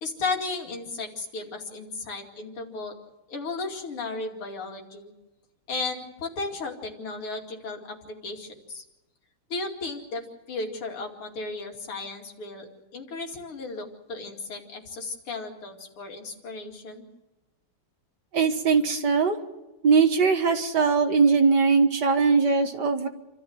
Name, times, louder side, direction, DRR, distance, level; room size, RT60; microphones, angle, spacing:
voice 1, 0.0-2.9 3.3-5.1 5.7-8.8 9.5-17.0, left 3 dB, 75° left, 2 dB, 3.4 m, -35 dB
voice 2, 18.3-19.4 19.8-23.1, right 5 dB, 55° right, 6 dB, 1.9 m, -21 dB
28.5 x 13.5 x 7.8 m, 1.0 s
omnidirectional pair, 2.4 m